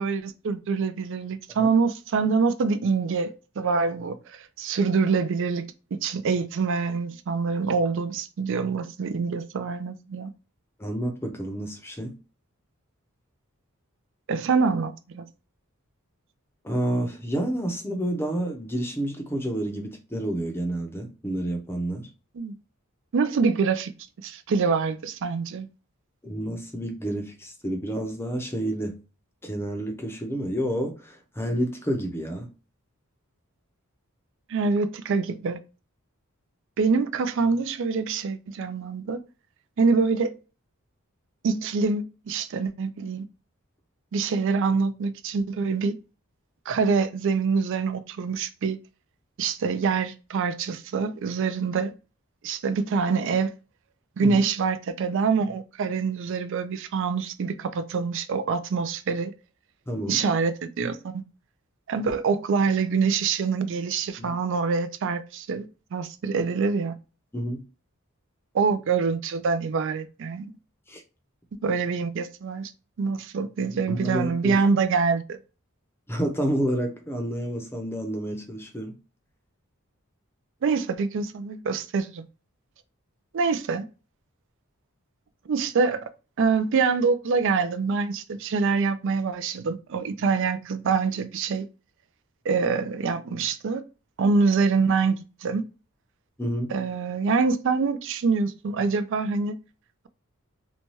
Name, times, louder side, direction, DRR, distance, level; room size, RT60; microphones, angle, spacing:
voice 1, 0.0-10.3 14.3-15.3 22.4-22.6 23.1-23.9 24.2-25.7 34.5-35.6 36.8-39.2 39.8-40.3 41.4-43.2 44.1-45.9 46.7-48.8 49.4-51.9 52.4-53.5 54.2-59.3 60.1-61.2 61.9-67.0 68.5-70.5 71.5-72.7 73.0-75.4 80.6-82.3 83.3-83.8 85.5-86.1 86.4-91.7 92.5-93.8 94.2-95.6 96.7-99.6, right 5 dB, 60° right, 0.4 m, -25 dB
voice 2, 10.8-12.1 16.6-22.1 26.2-29.0 29.4-32.5 54.2-54.4 59.9-60.2 64.2-64.4 67.3-67.6 70.9-71.0 73.7-74.6 76.1-78.9 96.4-96.7, right 1 dB, 10° left, 0.6 m, -29 dB
2.7 x 2.2 x 3.0 m
head